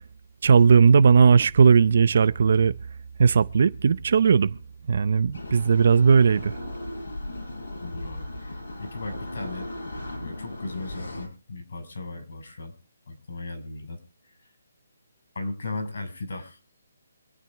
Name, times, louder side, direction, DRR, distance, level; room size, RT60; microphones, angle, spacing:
voice 1, 0.4-2.7 3.2-4.5 4.9-6.5, right 6 dB, 45° right, 0.7 m, -17 dB
sound 1, 5.3-11.3, left 1 dB, 75° left, 6.8 m, -37 dB
voice 2, 7.8-9.7 10.2-12.7 13.1-14.0 14.3-14.4 15.3-16.6, left 3 dB, 60° left, 5.7 m, -37 dB
25.5 x 9.1 x 3.5 m
hypercardioid pair, 175°, 0 cm